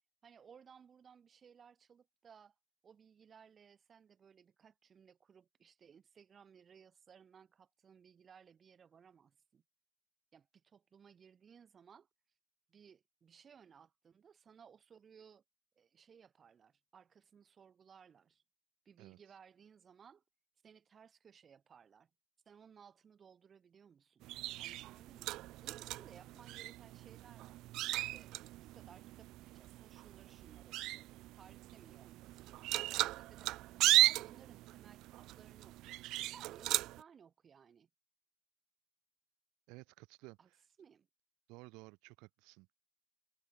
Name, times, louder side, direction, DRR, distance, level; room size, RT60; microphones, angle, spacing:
voice 1, 0.2-2.5 2.8-9.6 10.3-12.1 12.7-15.4 15.8-18.4 18.8-20.2 20.6-22.1 22.5-24.3 24.6-27.6 28.1-28.3 28.7-33.6 34.0-36.0 36.3-37.9 40.4-40.5 40.8-41.1, right 7 dB, 25° right, 7.9 m, -61 dB
sound 1, 24.2-37.0, right 17 dB, 60° right, 0.6 m, -37 dB
voice 2, 39.7-40.6 41.5-42.7, right 25 dB, 80° right, 5.1 m, -55 dB
cardioid pair, 170°, 0 cm